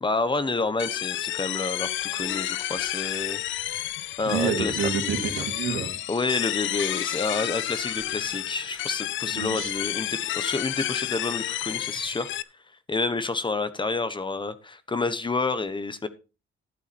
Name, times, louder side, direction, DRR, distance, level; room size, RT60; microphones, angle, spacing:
voice 1, 0.0-3.4 4.2-4.8 6.1-12.3 12.9-16.1, left 3 dB, 25° left, 13 dB, 1.1 m, -29 dB
sound 1, 0.8-12.4, left 13 dB, 75° left, 0.6 m, -30 dB
voice 2, 4.2-5.9 9.3-9.7, right 7 dB, 80° right, 5 dB, 2.3 m, -28 dB
12.0 x 8.3 x 4.3 m, 0.31 s
cardioid pair, 90°, 20 cm